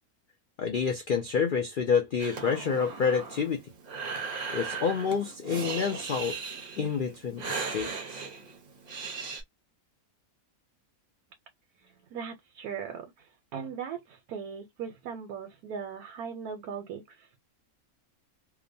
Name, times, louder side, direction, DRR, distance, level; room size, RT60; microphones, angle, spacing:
voice 1, 0.6-3.6 4.5-6.4 6.8-8.2, left 6 dB, 75° left, 0.4 m, -28 dB
Breathing, 2.2-9.4, right 5 dB, 45° right, 0.6 m, -38 dB
voice 2, 11.8-17.4, right 7 dB, 90° right, 1.2 m, -39 dB
2.9 x 2.1 x 2.5 m
omnidirectional pair, 1.5 m